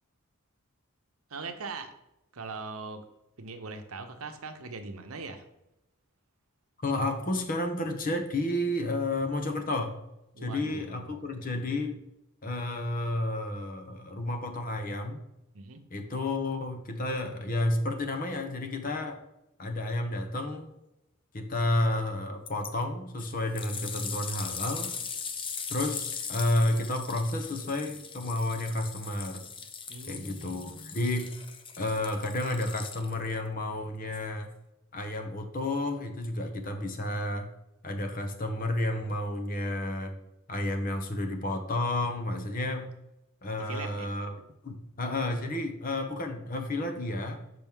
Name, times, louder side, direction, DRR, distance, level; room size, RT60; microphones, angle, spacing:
voice 1, 1.3-1.9 2.3-3.0 3.4-5.4 10.3-11.1 15.5-15.8 29.9-31.1 43.6-44.1, right 4 dB, 75° right, 7 dB, 0.8 m, -41 dB
voice 2, 6.8-10.0 10.4-12.0 12.4-15.2 15.9-19.2 19.6-20.7 21.3-24.9 25.7-29.5 30.1-31.3 31.8-34.5 34.9-37.5 37.8-40.1 40.5-42.9 43.4-44.3 44.6-47.4, left 1 dB, 40° left, 5 dB, 0.9 m, -31 dB
sound 1, 22.5-22.7 23.2-33.3 34.1-34.2, left 6 dB, 25° left, 0.4 m, -39 dB
6.1 x 6.0 x 3.6 m, 0.88 s
head